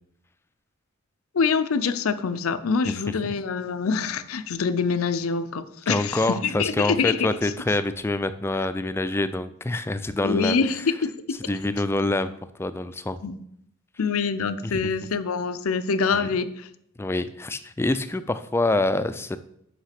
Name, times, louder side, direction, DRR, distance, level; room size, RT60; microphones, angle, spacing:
voice 1, 1.3-7.3 10.2-11.4 13.2-13.4 14.0-16.7, left 5 dB, 80° left, 12 dB, 0.5 m, -25 dB
voice 2, 5.9-10.6 11.5-12.3 12.6-13.2 14.6-14.9 16.1-16.3 17.0-19.4, left 2 dB, 10° left, 12 dB, 0.3 m, -26 dB
5.9 x 5.6 x 5.8 m, 0.74 s
head